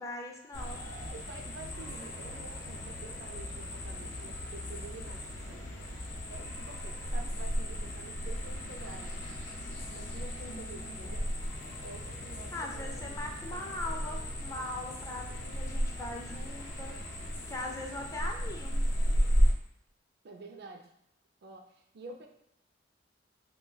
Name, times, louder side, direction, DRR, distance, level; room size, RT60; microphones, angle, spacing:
voice 1, 0.0-0.8 10.5-11.1 12.5-17.0 17.5-18.9, left 2 dB, 15° left, 1 dB, 0.4 m, -41 dB
sound 1, 0.5-19.5, equal, 70° left, 0.5 m, -34 dB
voice 2, 0.7-5.7 6.3-9.2 9.9-11.3 11.8-13.2 20.2-20.9 21.4-22.3, right 2 dB, 60° right, 3 dB, 0.4 m, -49 dB
sound 2, 1.6-15.4, right 1 dB, 85° right, 0.8 m, -54 dB
2.3 x 2.2 x 3.8 m, 0.76 s
head